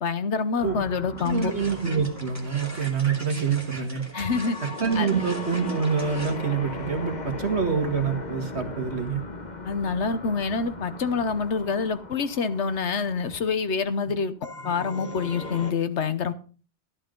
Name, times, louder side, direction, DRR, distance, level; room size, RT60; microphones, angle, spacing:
voice 1, 0.0-1.5 4.1-4.6 5.0-5.1 9.6-14.3 14.6-16.3, left 5 dB, 75° left, 1.3 m, -26 dB
sound 1, 0.6-15.7, left 3 dB, 40° left, 1.2 m, -38 dB
sound 2, 1.2-6.4, right 1 dB, 15° right, 2.5 m, -41 dB
voice 2, 1.2-4.0 4.8-9.2, right 6 dB, 70° right, 2.0 m, -26 dB
13.5 x 11.5 x 3.8 m
omnidirectional pair, 1.2 m